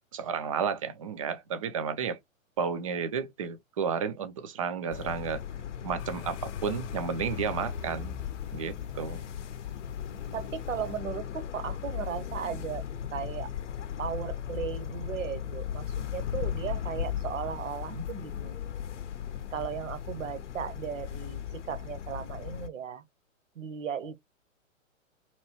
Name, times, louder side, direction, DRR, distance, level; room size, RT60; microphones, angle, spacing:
voice 1, 0.1-2.2 2.6-5.4 5.8-8.1 8.5-9.2 17.9-18.0, right 6 dB, 25° right, 0.4 m, -32 dB
sound 1, 4.9-22.7, left 9 dB, 60° left, 0.7 m, -37 dB
sound 2, 6.0-10.9, left 6 dB, 20° left, 0.5 m, -44 dB
voice 2, 10.3-12.8 13.1-13.5 14.0-18.6 19.5-23.0 23.6-24.2, right 8 dB, 65° right, 0.9 m, -36 dB
3.0 x 2.9 x 2.7 m
figure-of-eight pair, 120°, 41 cm